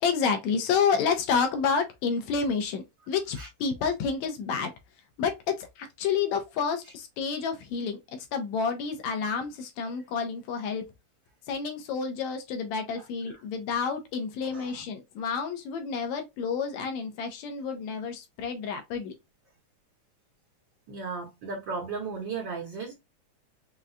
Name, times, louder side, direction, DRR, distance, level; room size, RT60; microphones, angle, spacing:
voice 1, 0.0-4.7 5.2-10.8 11.5-19.1, left 6 dB, 80° left, 2.0 m, -29 dB
voice 2, 20.9-22.9, right 4 dB, 70° right, 1.1 m, -35 dB
5.4 x 2.3 x 2.3 m
omnidirectional pair, 3.4 m